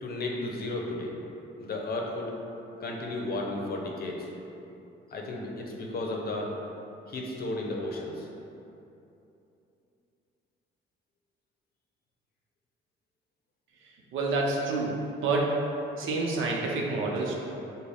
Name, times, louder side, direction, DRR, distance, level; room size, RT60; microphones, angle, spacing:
voice 1, 0.0-1.1 1.6-2.3 2.8-4.3 5.1-6.6 7.1-8.3, left 2 dB, 50° left, 0 dB, 0.7 m, -33 dB
voice 2, 14.1-15.6 16.0-17.3, right 3 dB, 80° right, -1 dB, 0.7 m, -28 dB
6.1 x 2.2 x 3.4 m, 2.8 s
cardioid pair, 90°, 20 cm